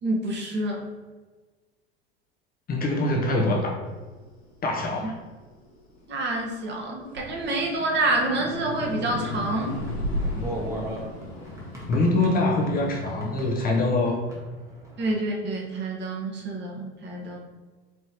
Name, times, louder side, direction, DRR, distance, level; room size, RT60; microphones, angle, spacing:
voice 1, 0.0-0.8 6.1-9.8 15.0-17.4, right 2 dB, 35° right, -1 dB, 1.1 m, -27 dB
voice 2, 2.7-3.7 4.6-5.2 11.9-14.2, left 2 dB, 30° left, 0 dB, 0.7 m, -24 dB
sound 1, 4.0-6.6 7.0-13.6, left 1 dB, 85° left, 1.1 m, -35 dB
sound 2, 9.4-15.2, equal, 10° right, 1.1 m, -38 dB
4.6 x 3.2 x 2.8 m, 1.3 s
hypercardioid pair, 85°, 31 cm